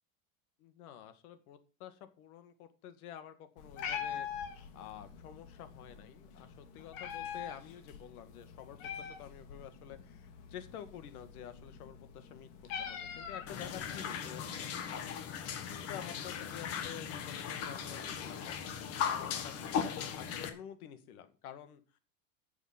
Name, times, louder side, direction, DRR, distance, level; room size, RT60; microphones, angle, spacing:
voice 1, 0.6-12.5 12.8-14.4 14.9-22.0, left 10 dB, 85° left, 10 dB, 2.0 m, -50 dB
Meow, 3.6-14.0, left 7 dB, 60° left, 2.5 m, -44 dB
sound 1, 13.5-20.5, left 7 dB, 35° left, 1.4 m, -38 dB
10.5 x 7.2 x 6.0 m, 0.36 s
supercardioid pair, 165°, 43 cm